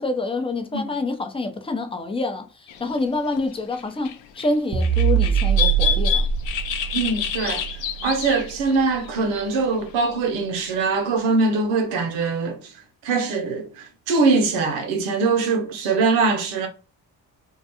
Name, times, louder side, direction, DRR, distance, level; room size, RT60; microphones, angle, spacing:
voice 1, 0.0-6.3, left 2 dB, 10° left, 0.5 m, -27 dB
sound 1, 2.7-3.0 3.3-3.4 3.7-4.5 4.8-9.2 9.5-9.8, left 9 dB, 65° left, 0.6 m, -28 dB
sound 2, 4.7-9.2, right 8 dB, 40° right, 0.7 m, -23 dB
voice 2, 6.9-7.6 8.0-12.7 13.0-16.7, right 4 dB, 80° right, 0.7 m, -22 dB
2.3 x 2.2 x 2.8 m
hypercardioid pair, 45°, 47 cm